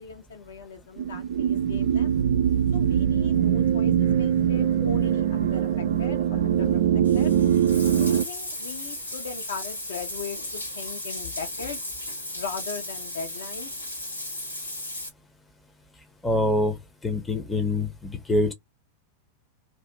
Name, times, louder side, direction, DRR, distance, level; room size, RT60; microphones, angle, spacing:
voice 1, 0.0-2.2 2.7-7.3 7.9-11.8 12.3-13.7, left 4 dB, 65° left, 1.0 m, -38 dB
sound 1, 1.0-8.2, right 9 dB, 60° right, 0.4 m, -22 dB
Bathtub (filling or washing), 7.0-15.1, left 1 dB, 85° left, 1.2 m, -35 dB
voice 2, 16.2-16.8 17.0-18.5, left 1 dB, 10° left, 0.8 m, -25 dB
2.6 x 2.4 x 3.1 m
figure-of-eight pair, 90°, 0 cm